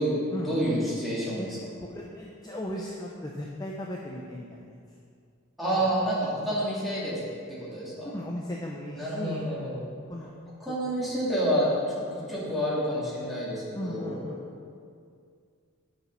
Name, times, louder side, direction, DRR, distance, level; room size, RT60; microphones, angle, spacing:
voice 1, 0.4-1.5 5.6-7.1 7.5-8.1 8.9-9.8 10.6-14.2, equal, ahead, -9 dB, 2.6 m, -28 dB
voice 2, 1.8-4.8 5.8-6.0 8.1-9.4 10.1-10.3 10.7-11.2 12.2-12.5 13.7-14.5, equal, 20° left, -2 dB, 0.6 m, -37 dB
10.0 x 6.0 x 5.4 m, 2.3 s
head